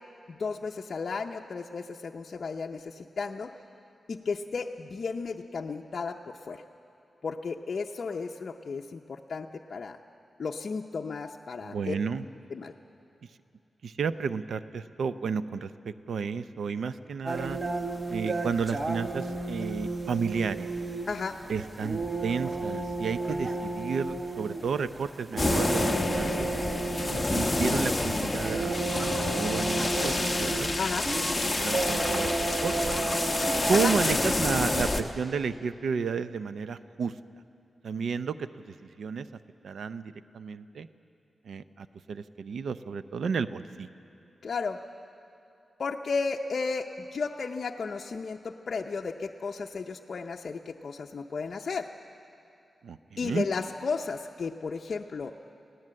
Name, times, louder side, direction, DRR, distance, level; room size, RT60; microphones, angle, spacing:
voice 1, 0.3-3.5 4.1-6.6 7.2-10.0 10.4-11.9 12.5-12.7 21.1-21.4 30.8-31.1 33.7-33.9 44.4-44.8 45.8-51.9 53.2-55.3, left 4 dB, 55° left, 2 dB, 0.6 m, -34 dB
voice 2, 11.6-12.2 13.8-17.6 18.1-20.7 21.5-26.5 27.1-30.7 31.6-32.3 32.6-32.9 33.7-37.1 37.8-39.3 39.6-40.9 41.5-43.9 52.8-53.5, right 5 dB, 80° right, 13 dB, 0.5 m, -32 dB
sound 1, 17.3-34.7, right 3 dB, 25° right, 1.2 m, -33 dB
sound 2, 25.4-35.0, left 2 dB, 15° left, 1.0 m, -28 dB
20.5 x 17.0 x 7.6 m, 2.6 s
wide cardioid pair, 115°, 0 cm